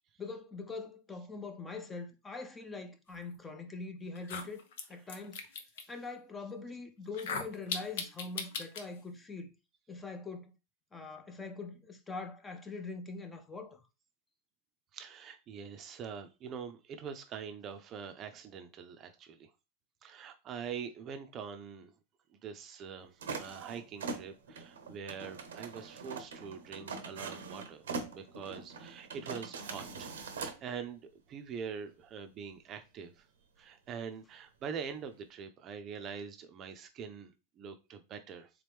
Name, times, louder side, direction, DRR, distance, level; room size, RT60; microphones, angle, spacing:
voice 1, 0.2-4.6 4.9-5.4 5.9-9.5 9.9-10.5 10.9-13.8, left 3 dB, 15° left, 0.7 m, -43 dB
sound 1, 3.6-3.7 4.2-5.8 7.1-8.8, left 5 dB, 75° left, 0.7 m, -38 dB
voice 2, 14.9-19.5 20.0-21.9 22.4-27.8 28.1-33.2 33.6-38.5, right 6 dB, 40° right, 0.5 m, -44 dB
sound 2, 23.2-30.6, right 4 dB, 85° right, 0.7 m, -42 dB
3.6 x 3.1 x 3.4 m
hypercardioid pair, 110°, 0 cm